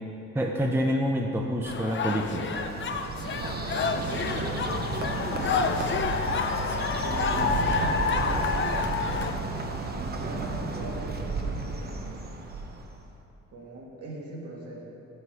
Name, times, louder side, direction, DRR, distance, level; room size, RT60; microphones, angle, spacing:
voice 1, 0.3-2.5, equal, 10° right, 1 dB, 0.6 m, -27 dB
sound 1, 1.7-9.3, left 5 dB, 40° left, 0.6 m, -29 dB
Bird, 1.7-13.1, right 3 dB, 30° right, 0.9 m, -33 dB
voice 2, 3.9-4.6 6.9-12.2 13.5-14.8, right 1 dB, 55° right, -2 dB, 2.0 m, -40 dB
8.0 x 7.7 x 4.7 m, 2.7 s
cardioid pair, 90°, 30 cm